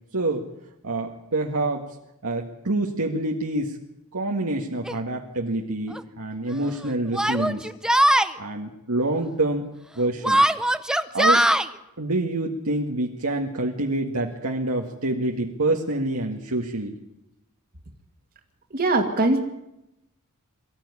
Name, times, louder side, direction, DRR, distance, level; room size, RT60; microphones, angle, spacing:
voice 1, 0.1-0.4 0.8-1.9 2.2-3.8 4.1-7.7 8.4-9.7 10.0-10.4 11.1-11.5 12.0-17.0, right 2 dB, 70° right, 0 dB, 1.9 m, -26 dB
Yell, 4.9-5.0 5.9-6.0 7.1-8.3 10.2-11.7, right 1 dB, 5° right, 0.7 m, -20 dB
voice 2, 18.7-19.5, right 2 dB, 40° right, 3 dB, 2.1 m, -21 dB
23.5 x 14.5 x 9.8 m, 0.89 s
head